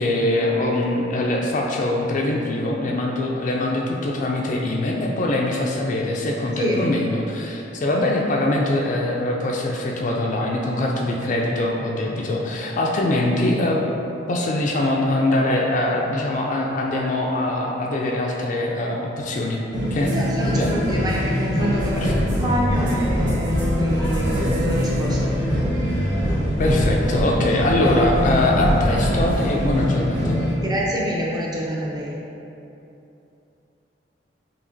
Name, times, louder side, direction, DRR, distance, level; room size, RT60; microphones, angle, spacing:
voice 1, 0.0-13.8 14.3-19.6 19.9-20.2 20.5-20.7 22.0-22.3 26.6-30.4, left 1 dB, 45° left, -1 dB, 0.3 m, -23 dB
sound 1, 19.7-30.5, equal, 90° right, 1.1 m, -23 dB
voice 2, 20.1-25.3 30.6-32.2, equal, 20° right, -4 dB, 0.6 m, -26 dB
sound 2, 21.7-29.8, equal, 70° right, 1.0 m, -29 dB
4.9 x 2.9 x 2.6 m, 2.8 s
head